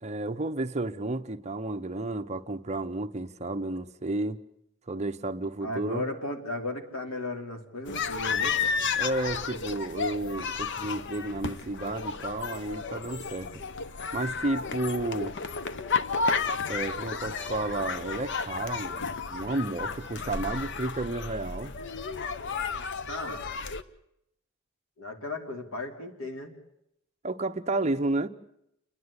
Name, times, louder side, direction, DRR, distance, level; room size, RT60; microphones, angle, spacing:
voice 1, 0.0-4.4 4.9-6.0 9.0-13.5 14.1-15.4 16.7-21.7 27.2-28.3, right 2 dB, 35° right, 0.8 m, -32 dB
voice 2, 5.6-8.6 23.1-23.4 25.0-26.5, left 2 dB, 90° left, 3.1 m, -35 dB
sound 1, 7.9-23.8, left 5 dB, 60° left, 0.8 m, -32 dB
28.5 x 11.0 x 9.7 m
head